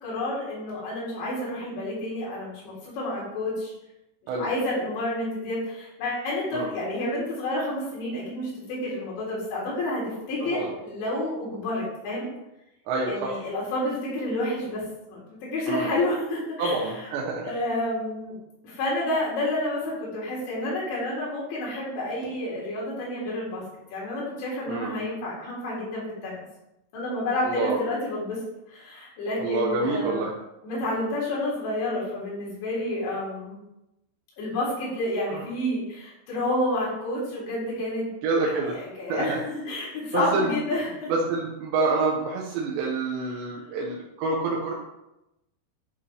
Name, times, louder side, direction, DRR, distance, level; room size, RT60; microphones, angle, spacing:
voice 1, 0.0-3.7 4.4-12.3 13.0-17.1 17.4-18.4 18.6-23.6 23.9-26.4 26.9-28.4 28.7-30.3 30.6-33.6 34.4-38.1 38.4-41.1, left 1 dB, 80° left, -6 dB, 6.0 m, -29 dB
voice 2, 12.9-13.4 15.7-15.9 16.6-17.4 24.7-24.9 27.4-27.8 29.4-30.3 35.3-35.4 38.2-38.8 39.1-39.4 40.1-40.5 41.1-44.7, right 3 dB, 75° right, -2 dB, 3.3 m, -27 dB
11.5 x 7.3 x 3.6 m, 0.90 s
omnidirectional pair, 5.2 m